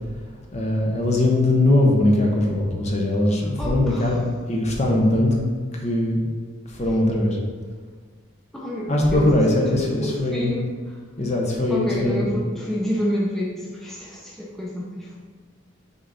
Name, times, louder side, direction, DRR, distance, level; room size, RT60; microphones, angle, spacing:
voice 1, 0.5-4.2 4.5-5.4 5.8-6.2 6.7-7.4 8.9-10.5 11.2-12.3, left 1 dB, 35° left, -1 dB, 0.9 m, -20 dB
voice 2, 3.6-4.2 8.5-11.0 11.7-15.2, equal, ahead, -6 dB, 0.7 m, -29 dB
6.6 x 4.2 x 4.1 m, 1.5 s
head